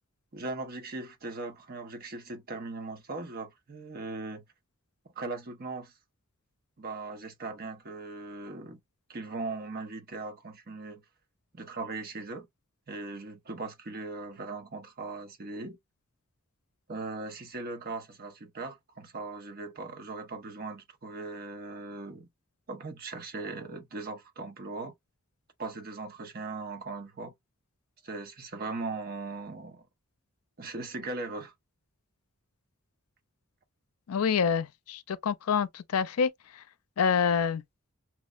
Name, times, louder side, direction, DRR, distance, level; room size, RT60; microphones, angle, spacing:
voice 1, 0.3-4.4 5.2-5.9 6.8-8.8 9.1-11.0 11.5-12.5 12.9-15.8 16.9-22.3 22.7-24.9 25.6-27.3 28.0-29.9 30.6-31.5, right 3 dB, 45° right, 0.7 m, -39 dB
voice 2, 34.1-36.3 37.0-37.6, left 6 dB, 85° left, 0.4 m, -27 dB
5.8 x 2.1 x 2.3 m
head